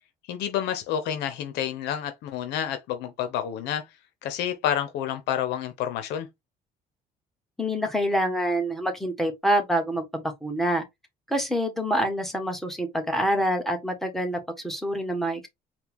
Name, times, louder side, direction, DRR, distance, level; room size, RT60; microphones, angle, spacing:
voice 1, 0.3-3.8 4.2-6.3, left 10 dB, 90° left, 0.8 m, -29 dB
voice 2, 7.6-10.8 11.3-15.5, equal, ahead, 1.3 m, -26 dB
4.5 x 2.3 x 3.5 m
cardioid pair, 110°, 17 cm